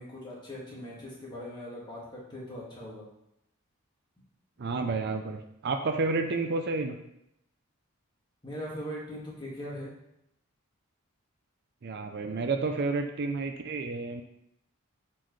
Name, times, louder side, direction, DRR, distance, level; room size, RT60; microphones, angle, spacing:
voice 1, 0.0-3.1 8.4-9.9, equal, 20° left, -5 dB, 1.8 m, -40 dB
voice 2, 4.6-7.0 11.8-14.2, right 3 dB, 50° right, 5 dB, 0.5 m, -30 dB
7.9 x 4.4 x 3.2 m, 0.80 s
head